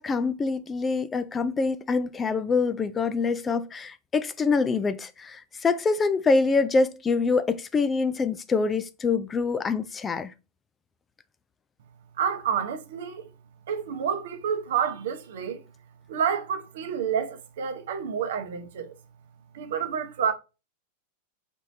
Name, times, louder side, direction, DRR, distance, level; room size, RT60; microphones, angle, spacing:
voice 1, 0.0-10.3, left 4 dB, 20° left, 0.3 m, -25 dB
voice 2, 12.2-13.3 13.7-15.6 16.1-18.9 19.5-20.3, right 7 dB, 55° right, 0.7 m, -29 dB
4.2 x 3.1 x 2.6 m
figure-of-eight pair, 90°, 0 cm